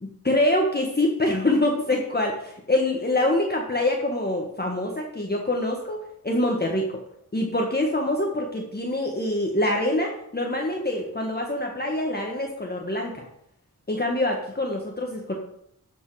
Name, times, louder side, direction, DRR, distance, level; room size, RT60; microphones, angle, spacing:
voice 1, 0.0-7.0 7.3-13.3 13.9-15.3, left 1 dB, 25° left, 0 dB, 1.5 m, -25 dB
12.5 x 5.5 x 4.8 m, 0.75 s
cardioid pair, 55°, 36 cm